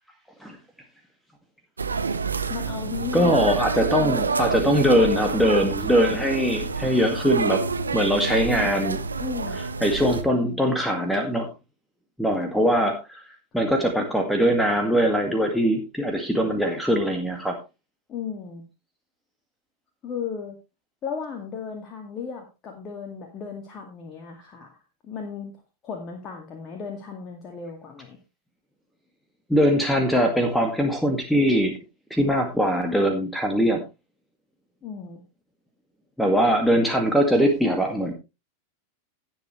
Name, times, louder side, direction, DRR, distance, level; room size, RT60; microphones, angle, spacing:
sound 1, 1.8-10.2, right 4 dB, 75° right, 1.1 m, -28 dB
voice 1, 2.5-3.3 9.2-9.6 16.5-16.7 18.1-18.6 20.0-20.6 21.0-24.7 25.0-25.5 25.8-28.2 34.8-35.2, left 6 dB, 30° left, 3 dB, 2.2 m, -35 dB
voice 2, 3.1-7.6 7.9-9.0 9.8-11.5 12.2-13.2 13.5-17.6 29.5-31.8 32.1-33.8 36.2-38.1, equal, ahead, 3 dB, 1.9 m, -21 dB
17.0 x 7.3 x 3.2 m, 0.27 s
figure-of-eight pair, 90°, 0 cm